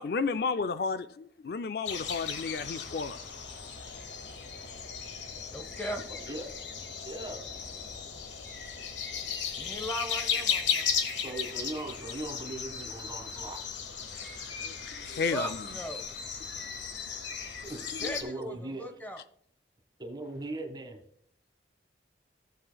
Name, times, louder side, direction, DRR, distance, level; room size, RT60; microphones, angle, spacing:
voice 1, 0.0-3.2 14.6-15.5 18.0-18.1, left 4 dB, 55° left, 0.4 m, -32 dB
sound 1, 1.9-18.2, left 7 dB, 85° left, 1.4 m, -36 dB
voice 2, 5.4-6.0 9.5-10.9 15.3-16.1 18.0-19.2, equal, 10° left, 0.9 m, -38 dB
voice 3, 7.0-7.4 11.2-13.6 17.6-18.8 20.0-21.0, right 2 dB, 25° right, 1.6 m, -39 dB
14.5 x 7.6 x 2.3 m
head